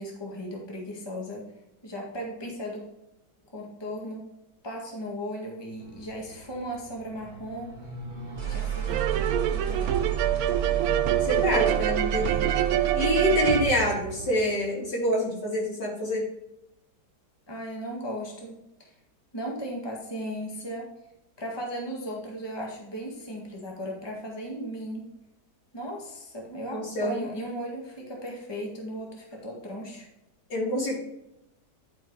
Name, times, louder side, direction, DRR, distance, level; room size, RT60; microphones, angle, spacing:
voice 1, 0.0-1.5 1.8-2.8 3.5-4.2 4.6-7.7 8.5-8.9 9.5-10.0 17.5-18.9 19.3-20.9 21.4-25.1 25.7-30.1, equal, 15° left, -1 dB, 1.7 m, -36 dB
sound 1, 5.8-13.6, right 9 dB, 30° right, 1.2 m, -32 dB
sound 2, 8.9-14.7, right 11 dB, 70° right, 0.9 m, -26 dB
voice 2, 11.1-12.4 12.9-16.2 26.7-27.2 30.5-31.0, left 1 dB, 75° left, -3 dB, 3.3 m, -26 dB
11.5 x 4.7 x 4.7 m, 0.87 s
omnidirectional pair, 1.8 m